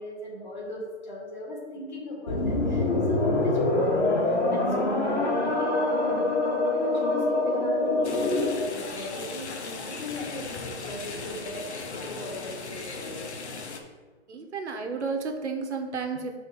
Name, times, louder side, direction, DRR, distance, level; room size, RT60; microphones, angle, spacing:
voice 1, 0.0-8.3 8.7-13.2, left 1 dB, 40° left, -2 dB, 2.2 m, -38 dB
sound 1, 2.3-8.7, left 2 dB, 90° left, 2.3 m, -25 dB
Copenhagen Center, 8.0-13.8, left 4 dB, 75° left, 1.2 m, -37 dB
voice 2, 14.3-16.4, right 4 dB, 80° right, 4 dB, 1.5 m, -32 dB
6.3 x 4.7 x 5.3 m, 1.3 s
hypercardioid pair, 175°, 34 cm